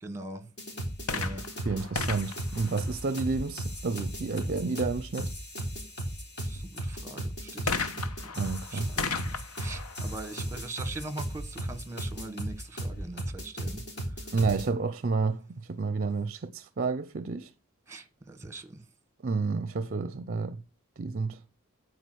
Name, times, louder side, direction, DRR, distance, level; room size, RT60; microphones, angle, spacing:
voice 1, 0.0-0.5 1.1-1.4 6.5-7.9 8.7-9.3 9.6-13.8 17.9-18.8, right 2 dB, 15° right, 1.3 m, -41 dB
sound 1, 0.6-14.7, right 1 dB, 50° left, 3.5 m, -36 dB
sound 2, 1.1-3.6 7.7-11.3 12.1-12.2, left 4 dB, 80° left, 1.1 m, -36 dB
voice 2, 1.7-5.3 8.4-8.9 14.3-15.4 15.7-17.5 19.2-20.6 21.0-21.4, right 4 dB, 45° right, 0.5 m, -30 dB
10.0 x 4.7 x 6.2 m
head